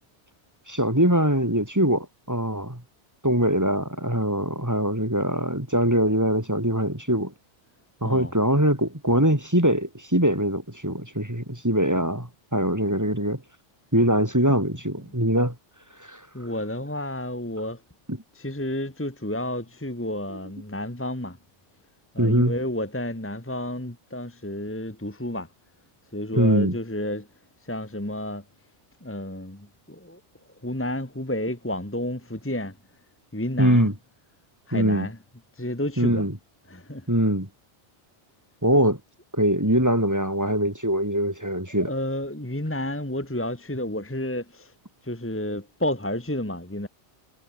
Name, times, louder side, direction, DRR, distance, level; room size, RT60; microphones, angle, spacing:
voice 1, 0.7-2.8 3.2-7.3 8.0-13.4 13.9-15.5 16.1-16.2 18.1-18.2 22.2-22.5 26.3-26.8 33.6-33.9 34.7-35.1 36.0-36.3 37.1-37.5 38.6-39.0 39.3-41.9, right 1 dB, 15° right, 4.1 m, -22 dB
voice 2, 8.0-8.3 16.3-17.8 18.3-21.4 22.1-25.5 26.1-27.3 27.6-28.4 29.0-30.2 30.6-32.8 33.3-33.9 34.7-35.2 35.6-36.3 36.7-37.1 41.7-44.7 45.0-46.9, left 1 dB, 10° left, 1.8 m, -31 dB
omnidirectional pair, 1.2 m